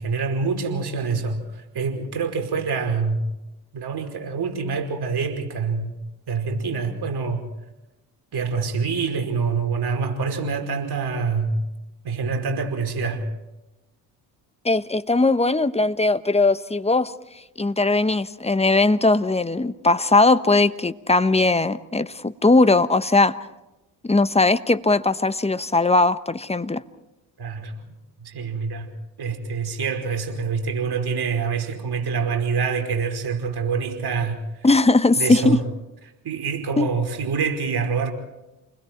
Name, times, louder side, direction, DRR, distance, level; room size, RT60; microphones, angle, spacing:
voice 1, 0.0-3.2 3.7-5.9 6.3-7.5 8.3-11.6 12.0-13.2 27.4-27.7 28.2-28.9 29.2-34.4 35.1-35.6 36.2-38.1, right 5 dB, 50° right, 5 dB, 5.2 m, -26 dB
voice 2, 14.6-17.1 17.6-23.3 24.0-26.8 34.6-35.6 36.8-36.9, left 3 dB, 10° left, 13 dB, 1.1 m, -19 dB
29.0 x 21.0 x 4.6 m, 0.98 s
hypercardioid pair, 55°, 49 cm